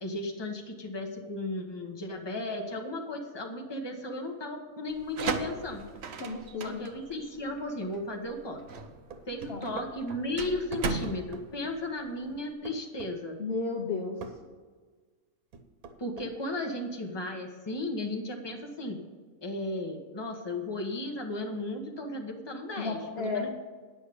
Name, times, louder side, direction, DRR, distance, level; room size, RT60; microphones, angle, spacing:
voice 1, 0.0-5.8 6.6-8.6 9.3-13.4 16.0-19.0 19.4-23.5, left 1 dB, 20° left, 2 dB, 1.2 m, -35 dB
sound 1, 4.9-12.5, right 5 dB, 55° right, 1.0 m, -37 dB
voice 2, 6.2-6.9 9.5-9.7 13.4-14.2 22.8-23.5, left 4 dB, 50° left, 1 dB, 1.1 m, -33 dB
sound 2, 9.1-9.9 10.7-11.5 12.7-13.1 14.2-14.4 15.5-16.3, right 4 dB, 80° right, 1.4 m, -42 dB
10.0 x 7.1 x 6.8 m, 1.5 s
omnidirectional pair, 1.5 m